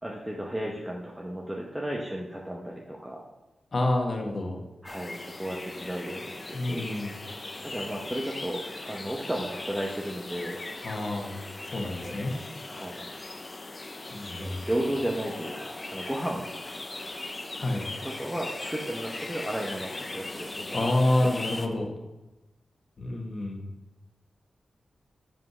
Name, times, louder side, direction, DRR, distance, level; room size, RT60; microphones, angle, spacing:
voice 1, 0.0-3.3 4.8-6.9 7.6-10.6 12.7-13.1 14.2-16.5 18.0-20.8 21.2-21.3, right 1 dB, 5° right, -2 dB, 1.0 m, -34 dB
voice 2, 3.7-4.6 6.5-7.2 10.8-11.4 11.7-12.3 14.1-14.6 17.5-17.9 20.7-21.9 23.0-23.7, left 1 dB, 45° left, 1 dB, 1.5 m, -28 dB
sound 1, 4.9-21.7, left 2 dB, 30° left, 0.7 m, -39 dB
7.5 x 5.6 x 6.2 m, 1.0 s
wide cardioid pair, 115°, 0 cm